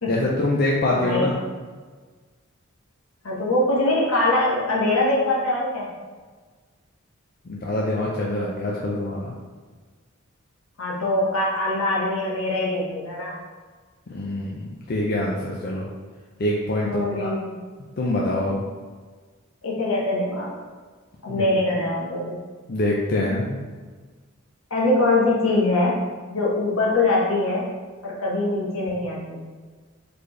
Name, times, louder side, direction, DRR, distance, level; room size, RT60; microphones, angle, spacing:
voice 1, 0.1-1.3 7.5-9.3 14.1-15.9 16.4-17.3 18.0-18.6 21.3-21.5 22.7-23.6, left 1 dB, 50° left, -3 dB, 0.5 m, -25 dB
voice 2, 0.9-1.3 3.2-5.9 10.8-13.4 16.8-17.5 19.6-20.5 21.2-22.4 24.7-26.0 26.3-27.7 28.0-29.4, left 2 dB, 75° left, -5 dB, 1.2 m, -23 dB
4.1 x 3.3 x 3.2 m, 1.4 s
head